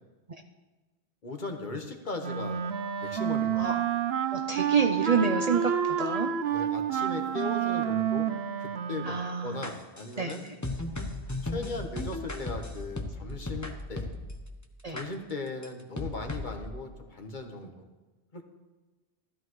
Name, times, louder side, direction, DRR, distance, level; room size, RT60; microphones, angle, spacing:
voice 1, 1.2-2.6 3.0-3.7 6.5-8.3 8.6-9.2 9.4-10.4 11.4-14.1 14.9-17.8 18.3-18.4, left 3 dB, 45° left, 4 dB, 1.3 m, -38 dB
Wind instrument woodwind instrument, 2.2-9.7, right 8 dB, 70° right, 0.9 m, -29 dB
voice 2, 4.3-6.3 9.0-9.6 10.2-10.3 14.8-15.0, right 5 dB, 45° right, 5 dB, 0.6 m, -28 dB
sound 1, 9.6-14.5 15.0-15.1 15.6-15.7 16.0-16.6, left 2 dB, 15° left, 0.9 m, -36 dB
14.0 x 13.5 x 3.1 m, 1.2 s
omnidirectional pair, 1.1 m